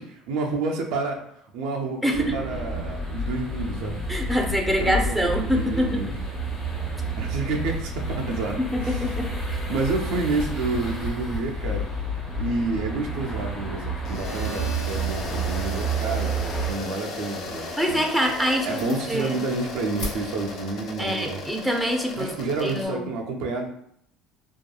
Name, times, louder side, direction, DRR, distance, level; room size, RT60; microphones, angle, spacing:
voice 1, 0.0-4.0 4.6-6.1 7.2-9.2 9.7-11.9 12.3-18.0 18.6-21.4 22.2-23.7, right 3 dB, 70° right, 1 dB, 0.4 m, -29 dB
sound 1, 2.1-16.7, right 2 dB, 25° left, 1.1 m, -30 dB
voice 2, 4.1-6.0 8.6-9.3 17.8-19.3 21.0-22.3 22.6-23.1, equal, ahead, 2 dB, 0.6 m, -25 dB
sound 2, 14.0-22.9, left 2 dB, 60° left, 0.4 m, -36 dB
sound 3, 15.4-22.6, left 1 dB, 85° left, 1.2 m, -43 dB
2.8 x 2.3 x 2.2 m, 0.71 s
hypercardioid pair, 75°, 0 cm